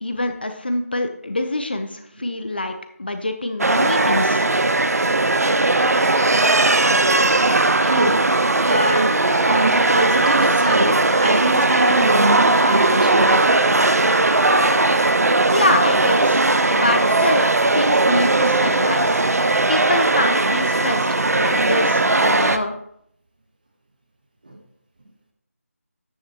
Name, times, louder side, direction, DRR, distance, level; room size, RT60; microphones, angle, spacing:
voice 1, 0.0-4.5 15.5-17.5 17.7-19.1 19.7-22.7, left 2 dB, 40° left, 7 dB, 0.8 m, -25 dB
sound 1, 3.6-22.6, right 2 dB, 75° right, 0.8 m, -18 dB
voice 2, 7.9-8.2 8.6-9.1 9.4-13.9 24.4-24.6, right 1 dB, 35° right, 3 dB, 1.2 m, -23 dB
9.5 x 9.4 x 2.9 m, 0.71 s
figure-of-eight pair, 175°, 8 cm